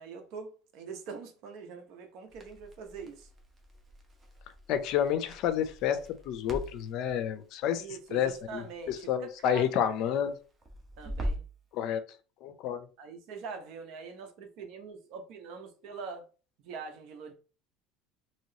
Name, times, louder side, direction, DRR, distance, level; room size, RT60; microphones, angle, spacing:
voice 1, 0.0-3.3 7.8-9.6 11.0-11.4 13.0-16.2 16.6-17.3, right 5 dB, 65° right, 0.9 m, -43 dB
Crackle, 2.3-11.6, equal, 20° right, 0.8 m, -43 dB
voice 2, 4.7-6.0 6.3-7.8 8.1-10.3 11.7-12.0 12.4-12.9, left 9 dB, 60° left, 0.5 m, -29 dB
3.0 x 2.9 x 2.8 m
supercardioid pair, 115°, 0 cm